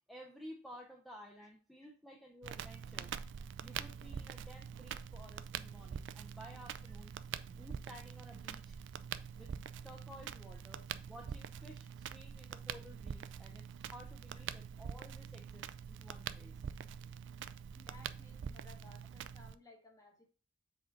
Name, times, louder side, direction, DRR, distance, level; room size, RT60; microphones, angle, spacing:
voice 1, 0.1-3.1 3.6-7.1 7.5-8.8 9.3-9.5 9.8-16.5, equal, ahead, -1 dB, 0.7 m, -54 dB
Crackle, 2.4-19.5, right 7 dB, 60° right, 0.4 m, -45 dB
voice 2, 17.7-20.3, left 2 dB, 15° left, 1 dB, 1.5 m, -60 dB
7.4 x 3.8 x 3.9 m, 0.38 s
head